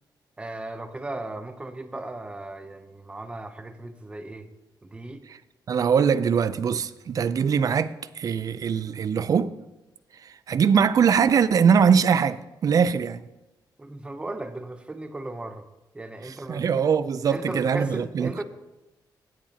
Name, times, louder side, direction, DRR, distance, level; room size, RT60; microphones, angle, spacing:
voice 1, 0.4-4.5 4.8-5.2 13.8-15.7 15.9-16.7 17.3-18.4, right 2 dB, 15° right, 0.7 m, -36 dB
voice 2, 5.7-9.5 10.2-13.2 16.3-18.3, right 6 dB, 50° right, 0.4 m, -22 dB
16.5 x 10.0 x 2.9 m
wide cardioid pair, 155°, 8 cm